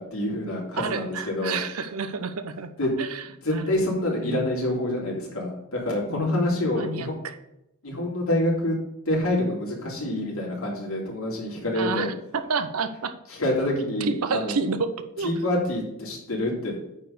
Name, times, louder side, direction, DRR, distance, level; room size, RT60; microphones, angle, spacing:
voice 1, 0.0-1.6 2.8-2.9 3.4-7.2 7.8-8.7 9.0-12.1 13.3-14.5 15.2-16.8, left 1 dB, 70° left, -4 dB, 3.2 m, -27 dB
voice 2, 0.8-2.7 3.0-3.2 3.5-3.7 4.2-4.5 6.1-7.4 11.7-13.1 14.0-15.3, right 4 dB, 85° right, 10 dB, 0.7 m, -29 dB
8.8 x 4.2 x 6.6 m, 0.87 s
head